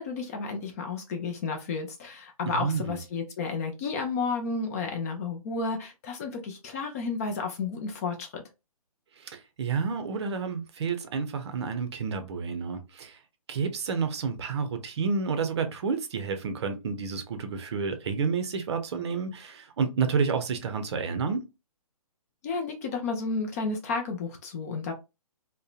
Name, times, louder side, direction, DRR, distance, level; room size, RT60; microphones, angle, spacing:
voice 1, 0.0-8.4 22.4-24.9, left 4 dB, 25° left, 0.4 m, -32 dB
voice 2, 2.5-3.0 9.2-13.2 13.5-21.4, right 5 dB, 45° right, 0.6 m, -30 dB
2.6 x 2.1 x 2.4 m
figure-of-eight pair, 140°, 19 cm